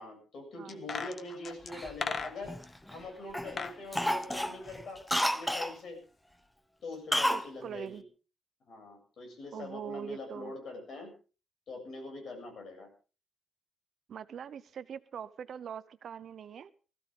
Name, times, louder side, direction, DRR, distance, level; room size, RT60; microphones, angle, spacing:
voice 1, 0.0-2.6 2.9-6.0 6.8-8.0 8.7-11.1 11.7-12.9, left 2 dB, 50° left, 7.7 m, -43 dB
sound 1, 0.7-2.7 3.3-3.8 4.1-5.4 5.7-5.8, left 5 dB, 35° left, 1.0 m, -39 dB
Cough, 1.7-3.0 3.3-3.6 3.9-5.7 7.1-7.5 7.7-7.8, equal, 5° left, 0.8 m, -31 dB
voice 2, 7.3-8.0 9.5-10.5 14.1-16.7, right 8 dB, 55° right, 0.7 m, -42 dB
20.5 x 15.0 x 3.8 m
wide cardioid pair, 175°, 0 cm